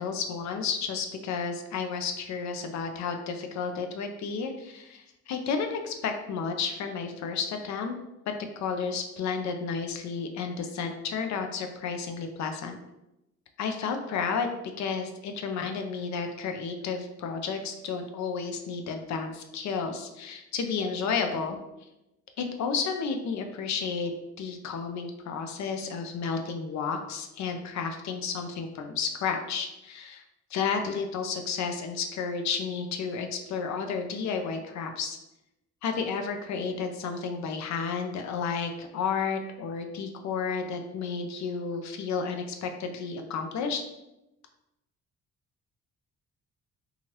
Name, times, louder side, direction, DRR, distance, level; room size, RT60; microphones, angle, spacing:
voice 1, 0.0-7.9 8.6-12.8 13.6-14.5 14.8-21.6 22.4-24.1 24.4-30.2 30.5-35.2 35.8-43.8, left 5 dB, 65° left, 5 dB, 0.5 m, -32 dB
2.8 x 2.4 x 3.1 m, 0.93 s
cardioid pair, 90°, 30 cm